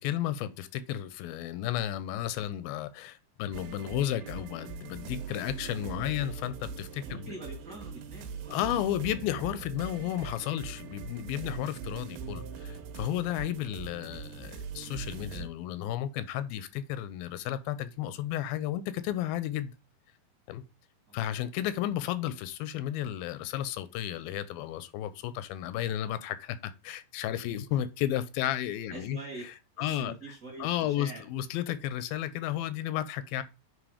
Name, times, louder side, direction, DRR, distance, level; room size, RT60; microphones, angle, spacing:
voice 1, 0.0-7.3 8.5-19.7 20.5-20.6 21.1-29.2 29.8-30.1 30.6-33.4, left 12 dB, 85° left, 2.5 m, -33 dB
sound 1, 3.5-15.5, right 5 dB, 90° right, 2.8 m, -42 dB
voice 2, 7.0-8.6 10.2-10.4 21.1-21.3 28.9-29.4 29.8-31.3, right 2 dB, 30° right, 1.9 m, -45 dB
9.1 x 3.6 x 4.9 m
omnidirectional pair, 4.2 m